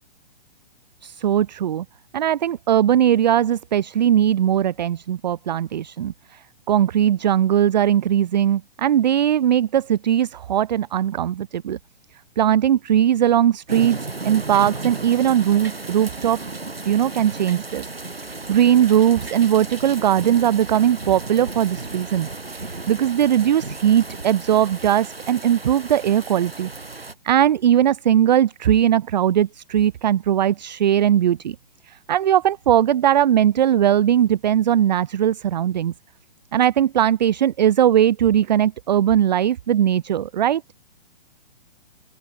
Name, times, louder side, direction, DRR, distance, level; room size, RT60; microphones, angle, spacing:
voice 1, 1.0-1.8 2.1-6.4 6.7-11.8 12.4-14.0 14.2-16.4 16.9-17.8 18.3-22.3 22.5-26.7 27.0-31.6 31.9-35.9 36.5-40.6, right 10 dB, 50° right, 0.6 m, -19 dB
sound 1, 13.7-27.1, right 3 dB, 90° right, 1.6 m, -34 dB
open air
figure-of-eight pair, 125°, 29 cm